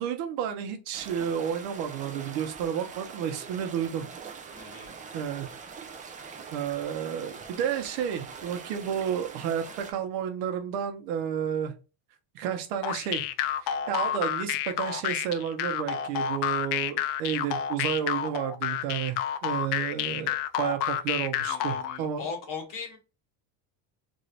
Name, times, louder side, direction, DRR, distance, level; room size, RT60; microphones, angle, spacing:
voice 1, 0.0-4.1 4.7-4.8 5.1-5.5 6.5-11.7 12.3-13.3 13.6-22.2, right 9 dB, 85° right, 0.9 m, -31 dB
sound 1, 0.9-9.9, right 5 dB, 20° right, 0.3 m, -43 dB
voice 2, 4.5-4.9 21.4-23.0, left 5 dB, 40° left, 1.4 m, -39 dB
sound 2, 12.8-22.0, left 10 dB, 60° left, 0.5 m, -29 dB
3.1 x 2.7 x 2.8 m
cardioid pair, 125°, 47 cm